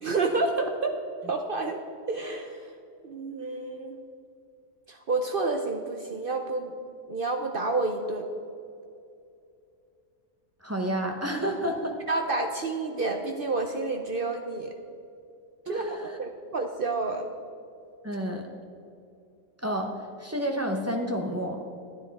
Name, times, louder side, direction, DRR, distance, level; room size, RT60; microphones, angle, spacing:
voice 1, 0.0-0.9 1.3-1.8 2.1-2.7 3.0-4.0 4.9-6.7 7.1-8.3 12.1-14.7 15.7-17.3, right 3 dB, 65° right, 4 dB, 0.5 m, -29 dB
voice 2, 10.6-12.0 15.7-16.0 18.0-18.4 19.6-19.9 20.2-21.6, equal, 15° right, 2 dB, 0.6 m, -30 dB
12.0 x 9.8 x 4.1 m, 2.5 s
omnidirectional pair, 1.8 m